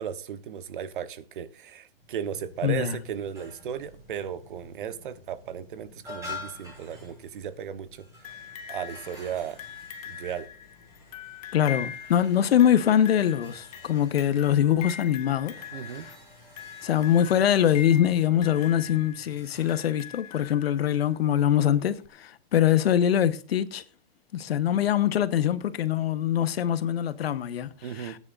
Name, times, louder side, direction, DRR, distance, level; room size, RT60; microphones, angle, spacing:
voice 1, 0.0-9.6 10.1-10.5 15.7-16.1 27.8-28.2, right 8 dB, 60° right, 1.1 m, -36 dB
sound 1, 1.9-19.7, left 2 dB, 10° right, 6.9 m, -48 dB
voice 2, 2.6-3.0 11.5-15.5 16.0-16.1 16.8-23.8 24.3-27.7 27.9-28.2, left 10 dB, 80° left, 1.2 m, -23 dB
sound 2, 8.2-21.1 22.0-22.1, left 8 dB, 40° left, 1.0 m, -42 dB
19.5 x 9.8 x 2.6 m
hypercardioid pair, 175°, 30 cm